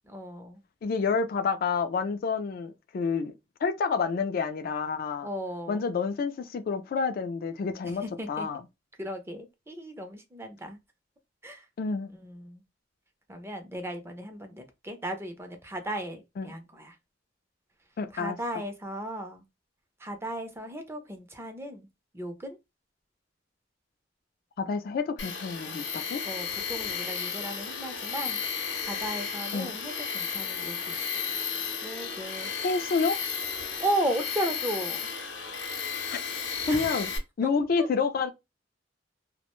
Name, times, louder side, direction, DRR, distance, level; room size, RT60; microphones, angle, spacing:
voice 1, 0.1-0.6 5.2-5.9 7.8-8.5 9.0-10.8 11.4-11.7 12.2-12.6 13.3-17.0 18.1-19.4 20.0-21.9 22.1-22.6 26.2-31.2 31.8-32.5 33.8-35.1 36.7-36.9 37.4-37.5 37.8-37.9, right 1 dB, 15° right, 0.5 m, -35 dB
voice 2, 0.8-3.3 3.6-5.3 5.7-8.6 11.8-12.1 16.4-16.5 18.0-18.6 24.6-26.2 29.5-29.7 32.6-33.2 36.1-36.2 36.7-37.1 37.4-38.3, left 5 dB, 55° left, 0.3 m, -29 dB
Tools, 25.2-37.2, left 6 dB, 75° left, 0.7 m, -33 dB
2.4 x 2.1 x 2.9 m
head